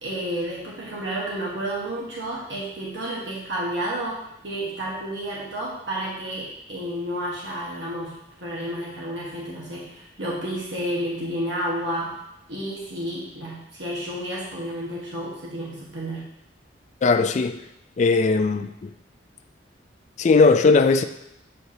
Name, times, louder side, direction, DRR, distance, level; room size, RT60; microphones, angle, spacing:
voice 1, 0.0-12.1 12.5-16.3, right 1 dB, 70° right, 1.2 m, -31 dB
voice 2, 17.0-17.6 18.0-18.9 20.2-21.0, left 4 dB, 40° left, 0.3 m, -18 dB
8.0 x 4.5 x 2.7 m
head